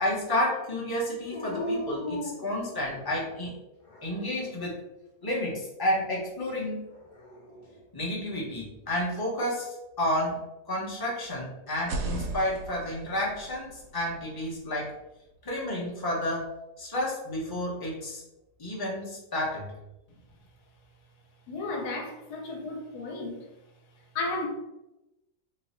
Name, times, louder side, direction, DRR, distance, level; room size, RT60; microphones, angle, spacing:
voice 1, 0.0-3.5 4.0-4.8 5.2-6.8 7.9-10.4 10.7-14.9 15.4-16.5 16.8-18.2 18.6-19.7, left 1 dB, 20° left, -4 dB, 0.6 m, -31 dB
Dog, 1.3-3.2 3.8-4.6 6.9-7.8, left 1 dB, 60° left, 1.1 m, -37 dB
sound 1, 11.7-15.6, right 2 dB, 70° right, 0.9 m, -38 dB
voice 2, 21.5-23.4 24.1-24.5, left 2 dB, 75° left, 1 dB, 1.3 m, -33 dB
2.9 x 2.3 x 4.2 m, 0.94 s
omnidirectional pair, 1.7 m